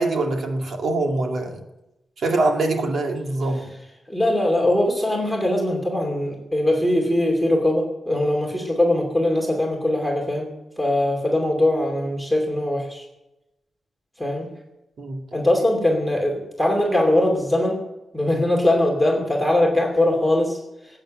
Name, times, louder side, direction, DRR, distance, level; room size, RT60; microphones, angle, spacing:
voice 1, 0.0-1.6 2.2-3.7 15.0-15.2, right 2 dB, 60° right, 3 dB, 2.2 m, -23 dB
voice 2, 4.1-10.5 10.8-13.0 14.2-14.5 15.3-17.8 18.1-20.6, left 1 dB, ahead, 1 dB, 2.7 m, -21 dB
18.0 x 8.9 x 7.6 m, 0.96 s
wide cardioid pair, 115°, 0 cm